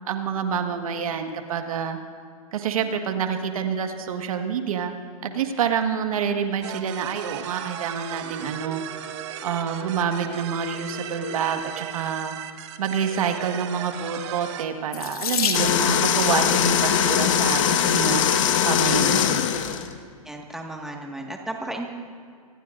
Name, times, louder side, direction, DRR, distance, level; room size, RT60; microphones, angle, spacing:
voice 1, 0.1-2.0 2.5-4.9 5.2-8.8 9.4-12.3 12.8-19.5, right 7 dB, 65° right, 5 dB, 1.7 m, -27 dB
sound 1, 6.6-14.6, right 10 dB, 50° right, 1.4 m, -36 dB
Water tap faucet / Sink (filling or washing), 14.9-16.2 17.2-17.6 18.3-18.4 18.7-18.8, left 7 dB, 75° left, 2.2 m, -29 dB
sound 2, 15.5-19.9, left 9 dB, 60° left, 1.4 m, -21 dB
voice 2, 20.3-21.9, right 1 dB, ahead, 1 dB, 1.8 m, -34 dB
27.0 x 20.0 x 2.6 m, 2.2 s
hypercardioid pair, 130°, 19 cm